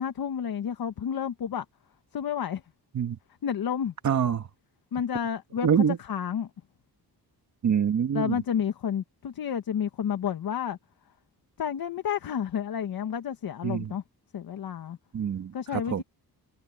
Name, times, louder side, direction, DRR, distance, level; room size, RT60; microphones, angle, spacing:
voice 1, 0.0-1.7 2.1-2.6 3.4-3.9 4.9-6.5 8.1-10.8 11.6-14.0 14.3-15.0 15.5-16.0, left 8 dB, 65° left, 1.7 m, -30 dB
voice 2, 4.0-4.5 5.6-6.0 7.6-8.4 13.6-13.9 15.1-16.0, right 8 dB, 50° right, 1.5 m, -25 dB
wide cardioid pair, 140°, 38 cm